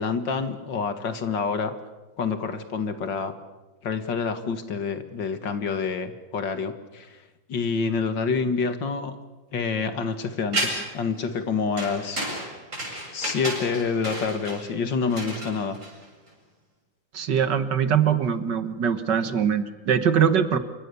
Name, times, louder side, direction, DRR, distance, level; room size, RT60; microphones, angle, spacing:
voice 1, 0.0-1.7 2.2-3.3 3.8-7.2 7.5-9.2 9.5-12.2 13.1-15.8 19.2-19.4 20.5-20.6, left 5 dB, 70° left, 9 dB, 2.5 m, -27 dB
sound 1, 10.5-11.0 11.8-16.3, right 1 dB, 40° right, 8.0 m, -31 dB
voice 2, 17.1-20.6, right 8 dB, 65° right, 11 dB, 2.0 m, -22 dB
27.5 x 24.5 x 7.0 m, 1.2 s
omnidirectional pair, 2.0 m